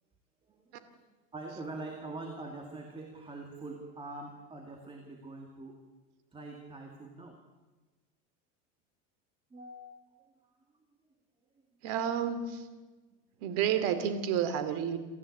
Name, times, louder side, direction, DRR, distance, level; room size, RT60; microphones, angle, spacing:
voice 1, 0.5-5.8 6.3-7.4 9.5-10.3, right 2 dB, 15° right, 3 dB, 2.2 m, -44 dB
voice 2, 11.8-12.6 13.4-15.0, right 8 dB, 50° right, 11 dB, 2.5 m, -30 dB
28.0 x 14.0 x 8.5 m, 1.3 s
supercardioid pair, 155°, 39 cm